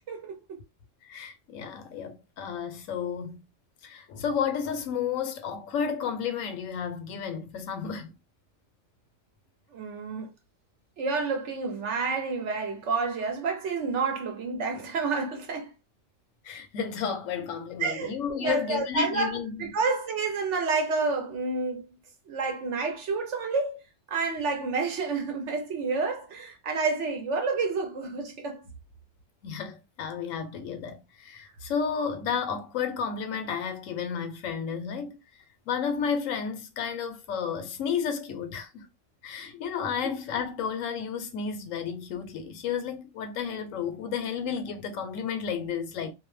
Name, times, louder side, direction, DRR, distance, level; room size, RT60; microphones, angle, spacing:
voice 1, 0.1-0.6 9.7-10.3 11.0-15.7 17.8-21.9 22.3-23.8 24.1-28.7 40.0-40.1, right 4 dB, 65° right, 1.1 m, -29 dB
voice 2, 1.1-3.4 3.8-8.1 16.4-19.7 29.4-35.2 35.7-38.9 39.2-46.1, left 7 dB, 75° left, 1.0 m, -32 dB
2.6 x 2.1 x 3.1 m
omnidirectional pair, 1.4 m